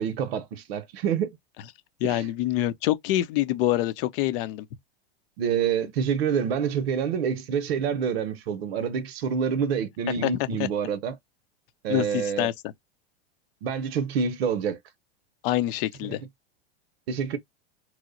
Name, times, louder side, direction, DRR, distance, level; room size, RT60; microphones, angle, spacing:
voice 1, 0.0-1.3 2.0-2.3 5.4-11.1 11.8-12.5 13.6-14.8 17.1-17.4, right 7 dB, 80° right, 0.7 m, -27 dB
voice 2, 2.0-4.7 10.2-10.5 11.9-12.7 15.4-16.2, left 14 dB, 60° left, 0.7 m, -26 dB
3.1 x 2.1 x 3.7 m
hypercardioid pair, 115°, 31 cm